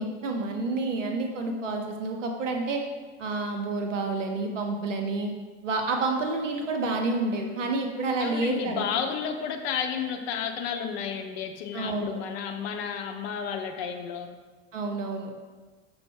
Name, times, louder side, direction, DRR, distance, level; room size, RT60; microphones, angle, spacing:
voice 1, 0.0-2.8 3.2-5.3 5.6-8.9 11.7-12.2 14.7-15.3, right 3 dB, 85° right, 3 dB, 0.6 m, -29 dB
voice 2, 8.2-14.3, left 7 dB, 60° left, 5 dB, 0.6 m, -32 dB
5.7 x 2.0 x 3.4 m, 1.4 s
figure-of-eight pair, 70°, 36 cm